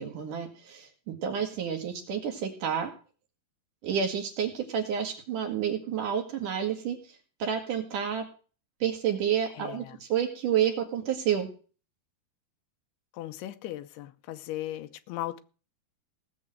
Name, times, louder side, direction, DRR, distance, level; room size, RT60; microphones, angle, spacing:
voice 1, 0.0-2.9 3.8-7.0 7.4-8.2 8.8-11.5, right 8 dB, 60° right, 3.3 m, -29 dB
voice 2, 9.5-10.0 13.1-15.4, left 14 dB, 90° left, 2.9 m, -37 dB
17.5 x 7.0 x 7.7 m
omnidirectional pair, 4.4 m